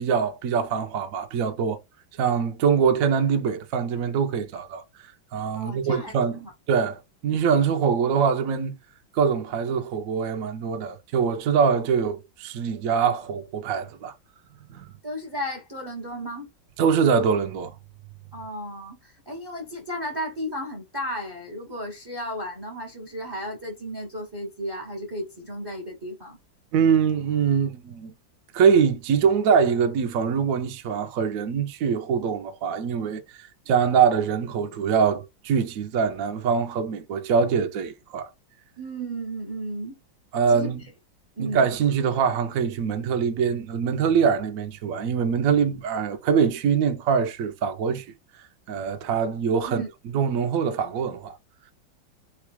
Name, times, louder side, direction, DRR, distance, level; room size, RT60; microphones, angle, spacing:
voice 1, 0.0-1.8 2.2-4.8 5.3-6.4 6.7-8.8 9.1-14.1 14.7-14.9 16.8-17.7 26.7-28.1 28.5-33.2 33.7-38.3 40.3-40.8 41.4-48.0 48.7-49.8 50.1-51.3, right 6 dB, 65° right, 0.8 m, -23 dB
voice 2, 5.5-6.5 15.0-16.5 18.3-26.4 38.8-40.0 40.5-40.7 41.4-41.6 49.6-49.9, equal, 25° right, 0.6 m, -34 dB
4.5 x 2.3 x 4.5 m
omnidirectional pair, 2.2 m